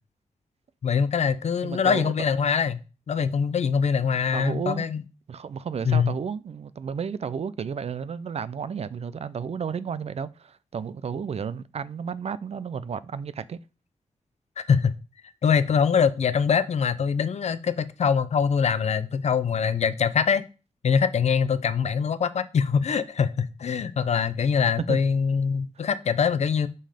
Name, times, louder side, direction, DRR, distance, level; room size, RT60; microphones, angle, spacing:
voice 1, 0.8-2.8 3.1-5.0 5.8-6.1 14.6-14.9 15.4-20.4 20.8-26.7, left 6 dB, 65° left, 0.6 m, -23 dB
voice 2, 1.6-2.1 4.3-4.9 5.3-13.6 24.8-25.0 25.8-25.9, right 6 dB, 60° right, 0.5 m, -32 dB
5.6 x 5.4 x 5.0 m
wide cardioid pair, 100°, 12 cm